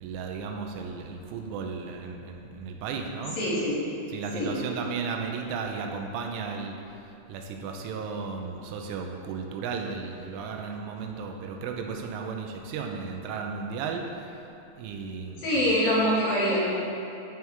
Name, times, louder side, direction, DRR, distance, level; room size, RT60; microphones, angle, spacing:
voice 1, 0.0-3.4 4.1-6.8 7.3-14.4 14.8-15.8, right 5 dB, 90° right, 2 dB, 3.3 m, -34 dB
voice 2, 3.4-3.9 4.3-4.6 15.4-16.8, equal, 55° left, -9 dB, 3.5 m, -25 dB
15.5 x 6.3 x 3.6 m, 2.7 s
omnidirectional pair, 5.6 m